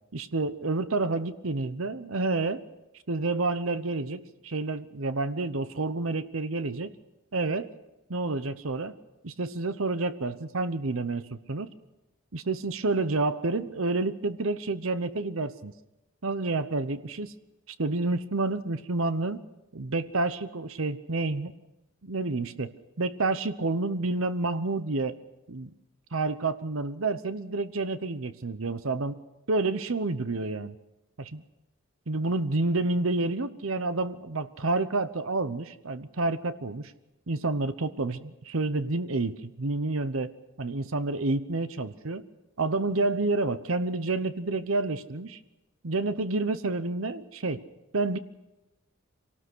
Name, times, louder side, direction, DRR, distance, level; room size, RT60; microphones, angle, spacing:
voice 1, 0.1-2.6 3.1-6.9 7.3-7.7 8.1-9.0 9.2-11.7 12.3-15.7 16.2-17.3 17.8-19.4 19.7-21.5 22.0-25.1 25.5-25.7 26.1-29.2 29.5-30.8 31.2-31.4 32.1-36.9 37.3-40.3 40.6-42.2 42.6-45.4 45.8-47.6 47.9-48.2, right 3 dB, 80° right, 12 dB, 0.9 m, -29 dB
25.5 x 18.5 x 6.3 m, 0.97 s
head